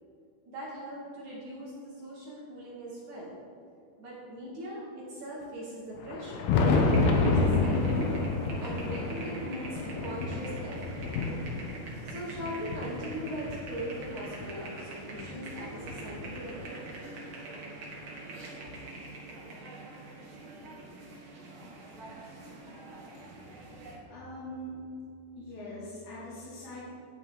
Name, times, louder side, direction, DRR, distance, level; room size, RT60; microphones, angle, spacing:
voice 1, 0.5-3.3 4.0-8.1 8.6-11.0 12.0-16.7, right 1 dB, 60° right, -5 dB, 2.3 m, -40 dB
Thunder, 6.0-14.5 15.2-16.9 18.0-18.1 18.7-18.8 20.7-20.8 22.1-22.2 23.8-23.9, left 3 dB, 75° left, 2.3 m, -29 dB
sound 1, 6.7-24.0, right 2 dB, 80° right, 1.1 m, -44 dB
voice 2, 24.1-24.8 25.4-26.9, left 1 dB, 50° left, -9 dB, 3.1 m, -42 dB
10.5 x 9.7 x 3.7 m, 2.5 s
omnidirectional pair, 5.0 m